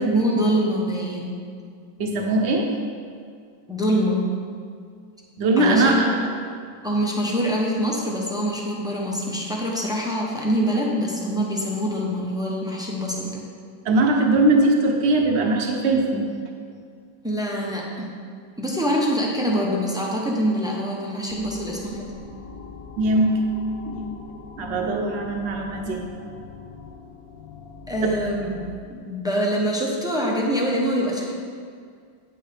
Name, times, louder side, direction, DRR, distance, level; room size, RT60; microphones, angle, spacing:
voice 1, 0.0-1.4 3.7-4.2 5.6-6.2 6.8-13.4 17.2-18.1 18.6-22.1 27.9-31.3, equal, 5° right, -3 dB, 0.5 m, -24 dB
voice 2, 2.0-2.7 5.4-6.2 13.8-16.3 23.0-23.5 23.8-24.2 24.6-26.0, right 2 dB, 45° right, 1 dB, 1.0 m, -20 dB
sound 1, 21.3-28.7, left 4 dB, 70° left, 1.4 m, -42 dB
9.2 x 8.9 x 3.5 m, 2.2 s
omnidirectional pair, 2.1 m